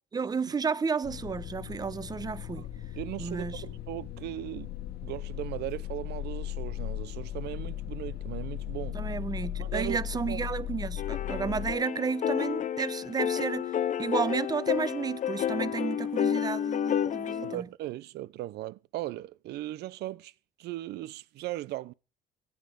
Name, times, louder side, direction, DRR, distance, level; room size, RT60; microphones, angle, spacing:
voice 1, 0.1-2.6 3.2-3.6 8.9-13.7 14.0-17.7, right 5 dB, 25° right, 0.6 m, -32 dB
sound 1, 1.0-11.7, left 13 dB, 65° left, 1.3 m, -37 dB
voice 2, 2.9-4.7 5.0-9.0 9.6-10.0 10.3-10.4 17.4-20.3 20.6-21.9, right 15 dB, 75° right, 0.6 m, -38 dB
sound 2, 11.0-17.6, left 9 dB, 45° left, 0.7 m, -30 dB
15.0 x 9.7 x 5.0 m
cardioid pair, 110°, 17 cm